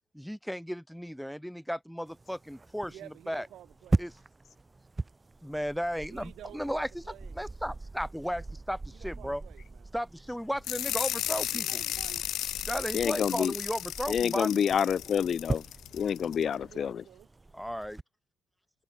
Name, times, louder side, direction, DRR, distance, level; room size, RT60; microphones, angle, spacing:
voice 1, 0.1-3.5 4.0-4.1 5.4-7.0 7.3-9.4 9.9-11.8 12.6-14.6 17.5-18.0, equal, ahead, 0.9 m, -35 dB
sound 1, 2.1-18.0, right 3 dB, 15° right, 1.7 m, -40 dB
voice 2, 2.9-4.0 6.1-7.4 8.9-9.8 11.5-12.2 16.4-17.3, right 12 dB, 80° right, 2.7 m, -50 dB
sound 2, 10.6-16.4, left 12 dB, 80° left, 1.0 m, -34 dB
voice 3, 12.9-13.5 14.1-15.6 15.9-17.0, left 8 dB, 45° left, 0.5 m, -28 dB
open air
cardioid pair, 150°, 0 cm